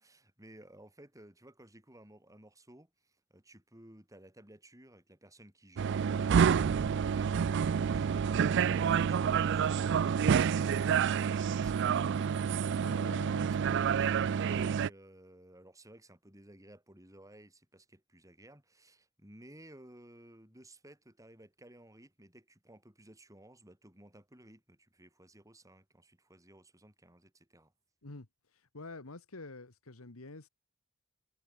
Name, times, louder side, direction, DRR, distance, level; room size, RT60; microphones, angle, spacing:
voice 1, 0.0-12.0 12.8-14.2 14.7-27.7, right 1 dB, 15° right, 6.4 m, -57 dB
sound 1, 5.8-14.9, right 7 dB, 55° right, 0.3 m, -28 dB
voice 2, 12.8-13.5 28.0-28.3 28.5-30.5, left 3 dB, 70° left, 1.7 m, -47 dB
head